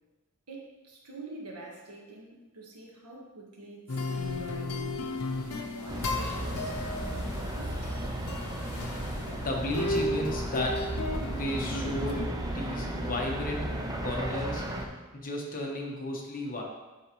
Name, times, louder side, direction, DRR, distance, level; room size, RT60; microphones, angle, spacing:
voice 1, 0.5-5.0 5.6-7.9, right 2 dB, 80° right, -1 dB, 1.3 m, -46 dB
sound 1, 3.9-12.3, left 2 dB, 75° left, 0.7 m, -35 dB
sound 2, 5.9-14.9, right 1 dB, 15° right, 0.5 m, -34 dB
voice 2, 9.4-10.9 11.3-13.8 14.0-14.7 15.1-16.6, left 1 dB, 40° left, 0 dB, 1.0 m, -34 dB
9.9 x 3.4 x 3.0 m, 1.1 s
head